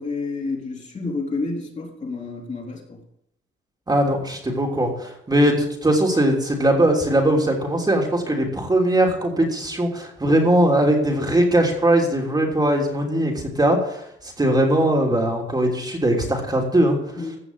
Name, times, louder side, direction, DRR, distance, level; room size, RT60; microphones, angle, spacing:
voice 1, 0.0-3.0 17.2-17.4, left 3 dB, 35° left, -1 dB, 4.0 m, -29 dB
voice 2, 3.9-17.0, right 1 dB, 20° right, 0 dB, 3.2 m, -20 dB
15.5 x 6.4 x 7.5 m, 0.77 s
cardioid pair, 90°, 20 cm